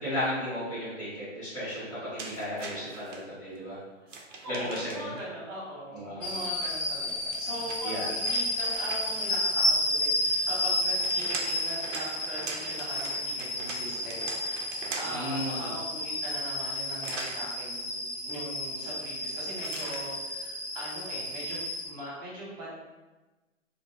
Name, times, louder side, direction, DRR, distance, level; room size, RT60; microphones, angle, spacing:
voice 1, 0.0-3.8 4.6-5.1 5.9-6.3 7.8-8.1 15.1-15.7, left 1 dB, 10° left, -17 dB, 0.8 m, -34 dB
sound 1, 2.2-3.2 4.1-5.2 7.0-9.3 10.7-15.3 17.0-17.4 19.6-20.1, right 4 dB, 75° right, 0.6 m, -41 dB
voice 2, 4.4-22.8, right 1 dB, 30° right, -6 dB, 1.3 m, -40 dB
sound 2, 6.2-21.9, left 1 dB, 30° left, 0.9 m, -31 dB
2.6 x 2.5 x 3.4 m, 1.2 s
hypercardioid pair, 155°, 37 cm